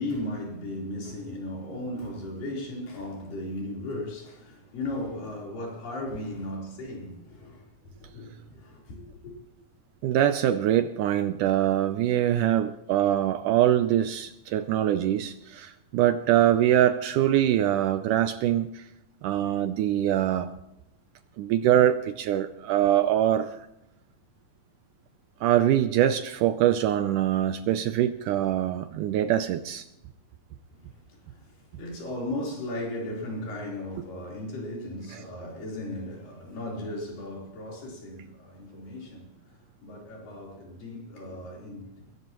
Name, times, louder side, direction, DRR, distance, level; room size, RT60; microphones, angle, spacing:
voice 1, 0.0-7.7 8.1-9.3 31.3-31.5 31.8-39.3 39.8-42.0, left 1 dB, 70° left, 5.6 m, -36 dB
voice 2, 10.0-18.8 19.2-20.5 21.4-23.6 25.4-29.9 35.1-35.2, right 11 dB, 75° right, 2.0 m, -23 dB
21.0 x 17.5 x 3.0 m
omnidirectional pair, 4.1 m